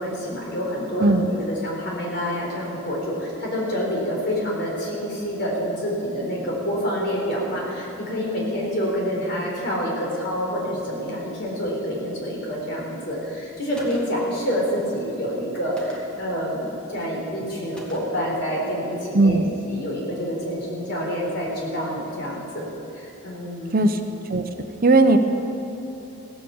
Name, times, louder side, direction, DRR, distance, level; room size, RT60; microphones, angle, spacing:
voice 1, 0.0-22.7 22.9-23.9, equal, 55° left, -3 dB, 3.9 m, -27 dB
voice 2, 1.0-1.3 19.1-19.5 23.7-24.0 24.3-24.5 24.8-25.2, right 2 dB, 45° right, 7 dB, 0.7 m, -17 dB
Gunshot gunfire, 13.8-14.4 15.8-16.3 17.8-18.3, right 1 dB, 5° left, 1.8 m, -42 dB
16.5 x 8.9 x 7.1 m, 3.0 s
head